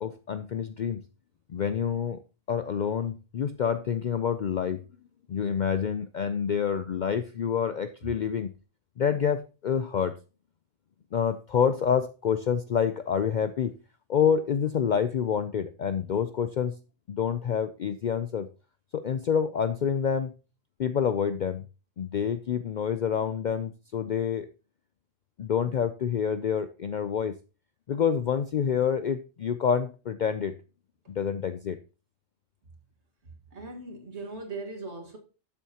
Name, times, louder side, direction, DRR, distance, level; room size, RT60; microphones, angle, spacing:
voice 1, 0.0-1.0 1.5-2.2 2.5-4.8 5.3-8.5 9.0-10.2 11.1-13.7 14.1-16.7 17.1-18.5 18.9-20.3 20.8-21.7 22.0-24.5 25.4-27.4 27.9-30.6 31.1-31.8, left 7 dB, 60° left, 0.5 m, -27 dB
voice 2, 33.3-35.2, right 3 dB, 65° right, 2.0 m, -39 dB
12.0 x 7.2 x 2.8 m
omnidirectional pair, 1.2 m